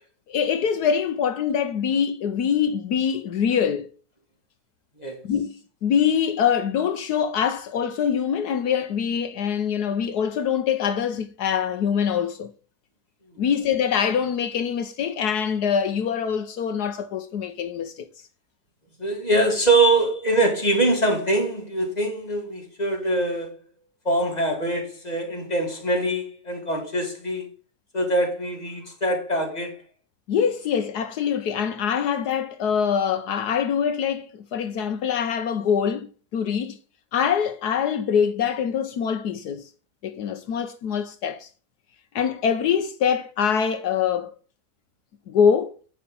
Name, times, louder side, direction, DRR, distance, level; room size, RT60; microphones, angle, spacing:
voice 1, 0.3-3.9 5.2-12.5 13.4-18.1 30.3-36.8 37.1-39.7 40.0-41.5 42.1-44.3 45.3-45.8, left 7 dB, 70° left, 1.3 m, -24 dB
voice 2, 19.0-23.6 24.0-27.5 27.9-29.8, right 2 dB, 25° left, 2.8 m, -23 dB
9.6 x 5.6 x 5.4 m
omnidirectional pair, 1.8 m